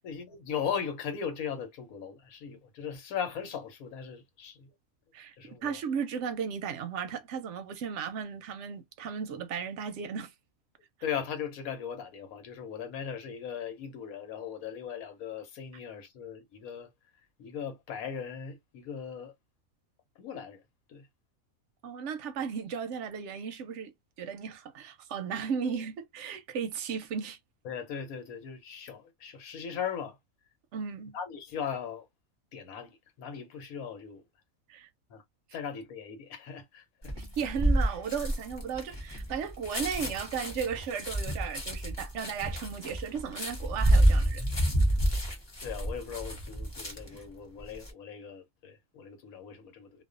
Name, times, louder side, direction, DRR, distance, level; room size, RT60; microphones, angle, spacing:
voice 1, 0.0-4.7 5.4-5.8 11.0-16.9 17.4-19.3 20.2-20.6 20.9-21.1 27.6-30.2 31.1-32.1 32.5-34.2 35.1-35.2 35.5-37.1 45.6-50.0, left 7 dB, 85° left, 1.2 m, -38 dB
voice 2, 5.6-10.3 21.8-23.9 24.2-27.4 30.7-31.2 34.7-34.9 37.2-44.4, right 7 dB, 65° right, 0.8 m, -35 dB
sound 1, 37.0-47.2 47.6-47.9, right 1 dB, 25° left, 0.7 m, -28 dB
2.4 x 2.3 x 2.4 m
omnidirectional pair, 1.5 m